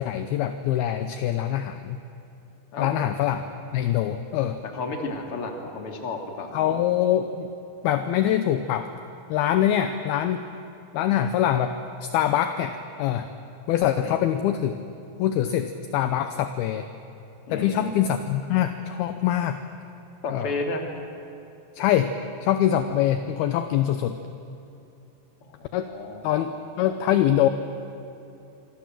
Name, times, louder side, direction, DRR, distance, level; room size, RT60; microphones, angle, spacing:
voice 1, 0.0-2.0 2.8-3.5 3.7-4.6 6.5-7.5 7.8-8.9 9.3-10.4 10.9-13.3 13.7-14.8 15.2-16.9 17.5-19.6 20.3-20.5 21.8-22.2 22.4-24.2 25.7-25.9 26.2-26.5 26.8-27.5, left 11 dB, 75° left, 9 dB, 2.5 m, -24 dB
voice 2, 4.7-6.8 14.0-14.2 17.5-17.9 20.2-20.8 25.4-26.3, left 3 dB, 35° left, 2 dB, 3.1 m, -32 dB
26.5 x 25.5 x 7.6 m, 2.8 s
omnidirectional pair, 5.0 m